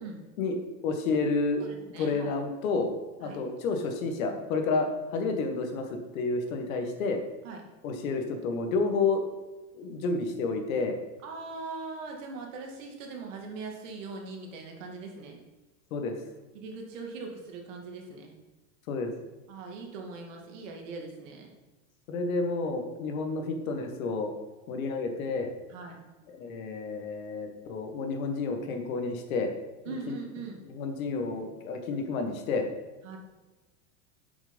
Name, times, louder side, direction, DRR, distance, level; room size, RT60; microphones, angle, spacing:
voice 1, 0.8-1.6 2.0-2.9 3.2-7.2 7.8-9.2 9.7-11.0 15.9-16.1 18.9-19.1 22.1-24.3 24.7-25.5 26.3-29.5 29.9-30.2 30.6-32.7, left 3 dB, 75° left, 5 dB, 1.6 m, -30 dB
voice 2, 1.6-2.3 3.2-3.4 5.1-5.4 7.4-7.6 11.2-15.4 16.5-18.3 19.5-21.5 25.7-26.0 29.9-30.6 33.0-33.2, right 4 dB, 65° right, 1 dB, 2.1 m, -41 dB
7.2 x 6.3 x 5.3 m, 1.1 s
supercardioid pair, 170°, 41 cm